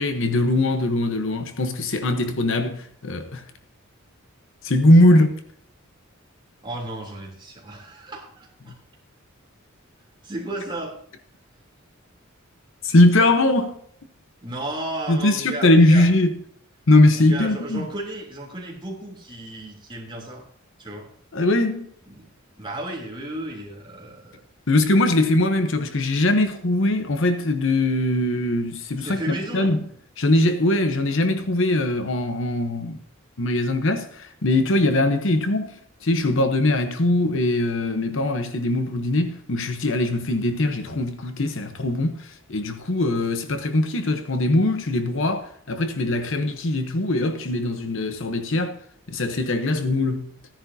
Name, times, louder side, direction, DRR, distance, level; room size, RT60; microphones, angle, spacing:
voice 1, 0.0-3.4 4.6-5.4 12.8-13.7 15.1-16.3 16.9-17.9 21.3-21.9 24.7-29.8 30.2-33.0 33.4-35.7 36.0-48.8 49.1-50.3, left 1 dB, 65° left, 1.0 m, -21 dB
voice 2, 6.6-8.7 10.2-10.9 14.4-16.1 17.1-20.4 20.8-21.1 22.1-22.3 22.6-24.4 29.0-29.7, right 1 dB, 25° right, 3.1 m, -34 dB
16.0 x 10.0 x 2.8 m
head